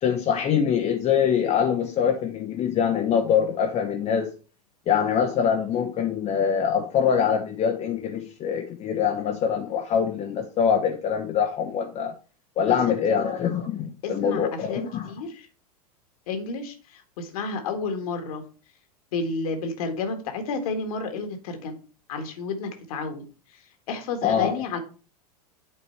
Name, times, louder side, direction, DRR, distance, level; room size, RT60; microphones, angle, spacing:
voice 1, 0.0-4.3 4.9-12.1 12.6-15.1 24.2-24.5, left 7 dB, 30° left, 1.0 m, -24 dB
voice 2, 14.0-15.5 16.3-18.4 19.1-21.8 22.1-23.2 23.9-24.8, left 4 dB, 65° left, 1.7 m, -31 dB
8.5 x 4.3 x 4.4 m
hypercardioid pair, 90°, 21 cm